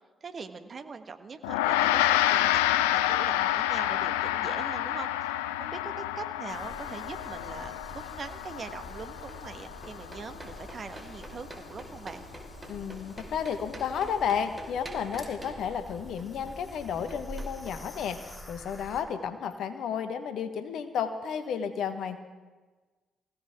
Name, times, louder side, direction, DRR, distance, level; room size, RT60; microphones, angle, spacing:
voice 1, 0.2-12.2, right 5 dB, 45° right, 8 dB, 1.3 m, -42 dB
Gong, 1.4-11.1, left 13 dB, 80° left, 0.4 m, -29 dB
sound 1, 6.5-19.0, equal, 25° left, 3.3 m, -47 dB
sound 2, 6.8-17.8, right 1 dB, 20° right, 4.5 m, -49 dB
voice 2, 12.7-22.2, left 7 dB, 65° left, 9 dB, 1.3 m, -32 dB
23.0 x 16.5 x 3.6 m, 1.3 s
hypercardioid pair, 40°, 0 cm